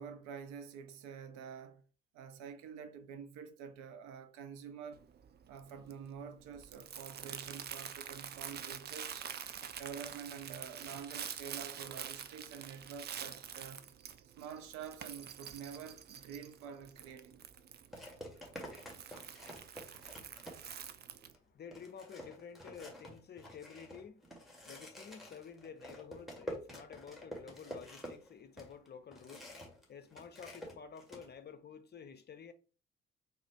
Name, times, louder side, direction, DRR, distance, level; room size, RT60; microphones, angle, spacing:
voice 1, 0.0-1.9 2.1-5.1 5.5-9.3 9.8-13.9 14.4-17.4, right 7 dB, 60° right, 0.7 m, -48 dB
Crumpling crinkling, 4.9-21.4, right 8 dB, 35° right, 0.5 m, -47 dB
sound 1, 16.9-17.1 17.9-20.9 21.3-21.4 21.7-29.8 30.1-31.3, left 1 dB, ahead, 1.8 m, -48 dB
voice 2, 20.2-29.6 29.9-32.5, left 7 dB, 30° left, 0.7 m, -52 dB
4.0 x 2.7 x 4.5 m
figure-of-eight pair, 40°, 31 cm